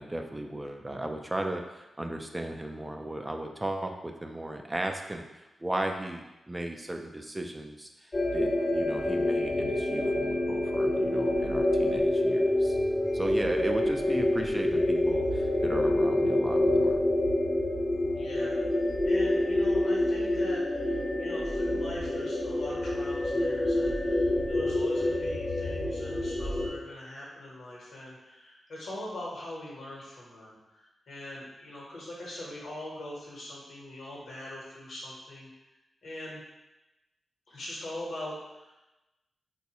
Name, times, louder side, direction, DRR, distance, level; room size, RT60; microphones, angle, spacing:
voice 1, 0.0-12.8 13.1-17.0, right 1 dB, 15° right, 3 dB, 0.4 m, -36 dB
sound 1, 8.1-26.7, left 1 dB, 35° left, 0.7 m, -27 dB
voice 2, 18.1-18.6 19.0-35.5 36.0-36.4 37.5-38.9, left 1 dB, 80° left, -4 dB, 1.0 m, -42 dB
4.0 x 2.3 x 2.9 m, 1.0 s
cardioid pair, 85°, 0 cm